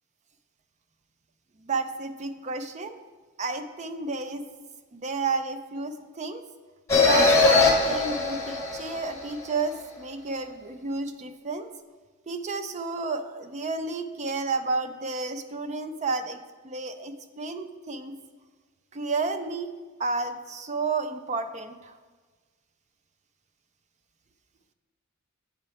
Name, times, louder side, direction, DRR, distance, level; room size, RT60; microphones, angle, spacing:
voice 1, 1.6-3.0 3.4-4.4 4.9-6.4 7.1-11.7 12.3-16.4 16.6-18.1 18.9-19.7 20.0-21.9, right 3 dB, 35° right, 9 dB, 0.4 m, -31 dB
sound 1, 6.9-9.4, left 3 dB, 15° left, 1.1 m, -21 dB
8.0 x 4.4 x 4.8 m, 1.4 s
head